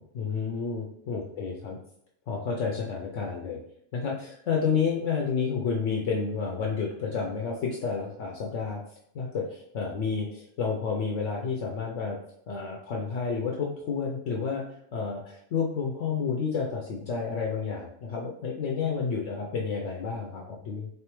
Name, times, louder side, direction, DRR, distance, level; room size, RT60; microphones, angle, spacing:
voice 1, 0.0-1.8 2.3-3.6 3.9-8.8 9.1-12.2 12.5-14.6 14.9-20.9, left 5 dB, 70° left, -1 dB, 0.9 m, -30 dB
3.9 x 3.3 x 2.9 m, 0.70 s
omnidirectional pair, 1.4 m